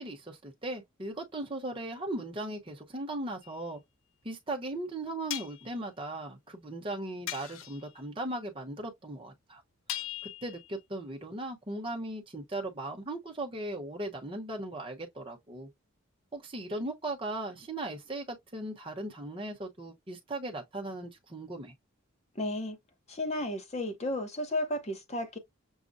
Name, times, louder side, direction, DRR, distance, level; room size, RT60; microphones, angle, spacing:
voice 1, 0.0-3.8 4.2-9.6 10.2-15.7 16.3-21.7, right 1 dB, 25° right, 0.9 m, -38 dB
sound 1, 3.4-3.6 5.3-5.7 7.3-7.9 9.9-10.8, left 13 dB, 65° left, 0.4 m, -39 dB
voice 2, 22.4-22.8 23.1-25.4, left 1 dB, 30° left, 0.7 m, -33 dB
6.3 x 2.1 x 2.6 m
head